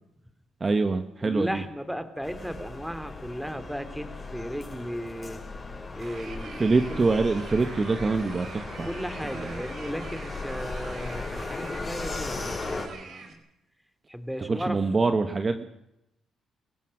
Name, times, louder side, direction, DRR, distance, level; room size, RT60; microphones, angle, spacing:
voice 1, 0.6-1.6 6.6-8.9 9.3-9.6 14.5-15.6, right 3 dB, 30° right, 8 dB, 1.5 m, -25 dB
voice 2, 1.2-5.4 6.0-7.0 8.8-13.4 14.1-14.8, equal, ahead, 10 dB, 2.7 m, -35 dB
sound 1, 2.2-12.9, left 3 dB, 30° left, 6.2 m, -37 dB
sound 2, 6.0-13.3, right 5 dB, 60° right, 4.4 m, -45 dB
26.5 x 16.0 x 6.5 m, 0.84 s
cardioid pair, 90°, 0 cm